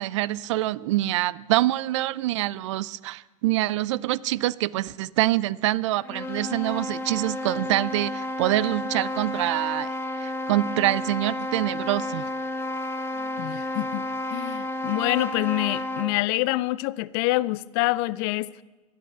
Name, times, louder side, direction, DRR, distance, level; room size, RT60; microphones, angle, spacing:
voice 1, 0.0-9.9 10.2-12.2, right 16 dB, 55° right, 0.4 m, -25 dB
sound 1, 5.9-16.2, left 1 dB, 15° left, 0.8 m, -31 dB
voice 2, 13.4-18.5, left 19 dB, 45° left, 0.4 m, -26 dB
12.5 x 11.5 x 5.8 m
figure-of-eight pair, 90°, 18 cm